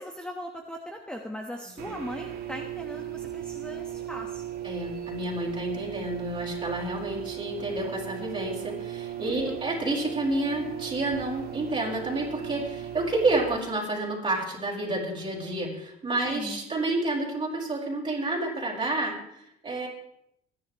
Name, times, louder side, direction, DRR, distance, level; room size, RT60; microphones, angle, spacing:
voice 1, 0.0-4.4 9.2-9.6 16.2-16.6, equal, 5° left, 2 dB, 1.4 m, -39 dB
sound 1, 1.8-13.5, right 11 dB, 65° right, 2.1 m, -37 dB
voice 2, 4.6-19.9, right 2 dB, 30° right, -2 dB, 5.3 m, -30 dB
25.5 x 10.5 x 3.2 m, 0.76 s
cardioid pair, 110°, 17 cm